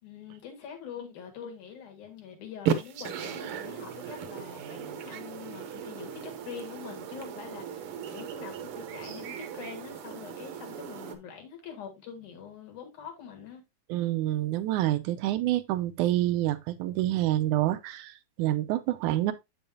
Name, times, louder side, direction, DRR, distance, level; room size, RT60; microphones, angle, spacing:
voice 1, 0.0-13.6, left 7 dB, 75° left, 3.4 m, -44 dB
sound 1, 2.6-11.2, right 8 dB, 70° right, 1.4 m, -36 dB
voice 2, 13.9-18.1 18.4-19.3, right 14 dB, 90° right, 2.1 m, -27 dB
7.8 x 6.9 x 2.7 m
omnidirectional pair, 3.5 m